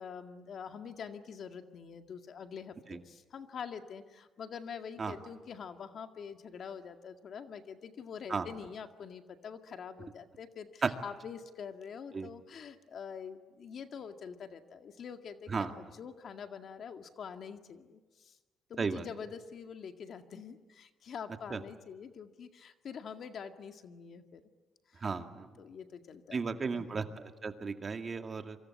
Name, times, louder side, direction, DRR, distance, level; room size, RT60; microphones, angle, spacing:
voice 1, 0.0-18.4 18.7-24.4 24.9-25.0 25.6-27.0, left 6 dB, 60° left, 6 dB, 2.0 m, -45 dB
voice 2, 25.0-25.5 26.3-28.6, right 4 dB, 35° right, 6 dB, 2.2 m, -34 dB
27.5 x 25.0 x 8.7 m, 1.3 s
cardioid pair, 90°, 0 cm